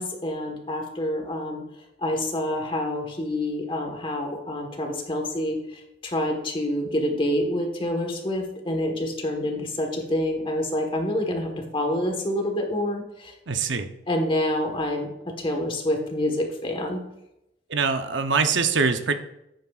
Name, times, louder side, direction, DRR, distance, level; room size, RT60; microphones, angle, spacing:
voice 1, 0.0-1.6 2.0-13.3 14.1-15.1 15.4-17.0, left 1 dB, 30° left, 3 dB, 1.4 m, -27 dB
voice 2, 13.5-13.9 17.7-19.1, right 5 dB, 85° right, 8 dB, 0.8 m, -23 dB
10.5 x 8.7 x 2.4 m, 0.85 s
head